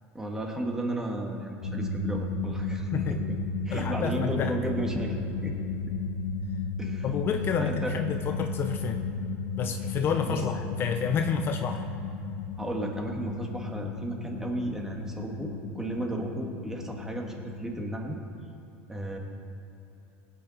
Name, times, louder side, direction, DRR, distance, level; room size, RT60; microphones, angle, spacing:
voice 1, 0.1-3.4 3.7-5.5 6.8-7.1 7.6-8.0 10.3-10.4 12.6-18.2 18.9-19.2, right 1 dB, 10° right, 1 dB, 2.0 m, -34 dB
sound 1, 1.6-17.8, left 4 dB, 80° left, 1.9 m, -34 dB
voice 2, 3.7-4.5 7.0-9.0 9.6-11.8, left 6 dB, 40° left, 6 dB, 0.8 m, -29 dB
18.5 x 9.5 x 4.3 m, 2.9 s
supercardioid pair, 120°, 6 cm